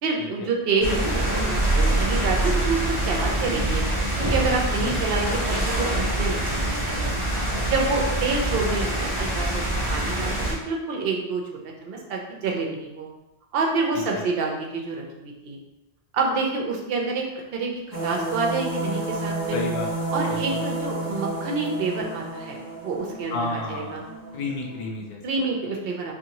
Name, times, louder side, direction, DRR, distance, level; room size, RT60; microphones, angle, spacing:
voice 1, 0.0-3.8 4.2-7.1 7.6-9.6 9.9-11.4 11.8-13.1 13.5-15.6 16.1-17.2 17.5-19.6 20.1-24.0 25.2-26.1, right 4 dB, 65° right, 0 dB, 0.6 m, -27 dB
sound 1, 0.8-10.5, right 1 dB, 30° right, 0.6 m, -25 dB
voice 2, 13.9-14.2 19.5-19.9 20.3-20.6 23.3-24.0 24.3-25.2, left 2 dB, 60° left, 0 dB, 0.4 m, -31 dB
sound 2, 17.9-24.9, right 2 dB, 90° left, 1.1 m, -31 dB
2.6 x 2.6 x 2.8 m, 0.97 s
omnidirectional pair, 1.3 m